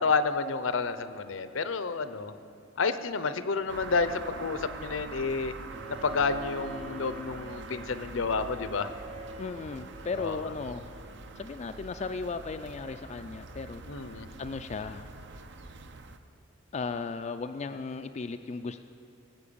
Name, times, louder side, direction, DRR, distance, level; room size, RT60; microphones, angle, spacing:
voice 1, 0.0-2.3 2.8-5.5 5.9-8.9 10.2-10.5 13.9-14.3, left 4 dB, 70° left, 12 dB, 0.6 m, -30 dB
sound 1, 3.7-16.2, right 3 dB, 60° right, 0.7 m, -45 dB
Bowed string instrument, 5.7-11.7, right 2 dB, 80° right, 1.8 m, -46 dB
voice 2, 9.4-10.9 11.4-15.1 16.7-18.8, left 4 dB, 35° left, 7 dB, 0.3 m, -36 dB
18.5 x 7.7 x 7.0 m, 2.5 s
head